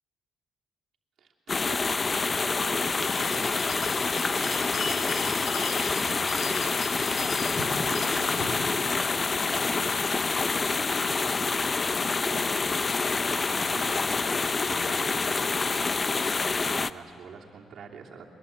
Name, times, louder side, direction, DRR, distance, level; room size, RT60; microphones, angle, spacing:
voice 1, 1.2-7.4 7.7-16.4 16.6-18.3, right 5 dB, 65° right, 0 dB, 2.8 m, -46 dB
sound 1, 1.5-16.9, left 4 dB, 30° left, 0.6 m, -27 dB
Bell, 2.8-10.1, left 3 dB, 75° left, 2.7 m, -39 dB
22.0 x 22.0 x 8.2 m, 2.6 s
cardioid pair, 90°, 0 cm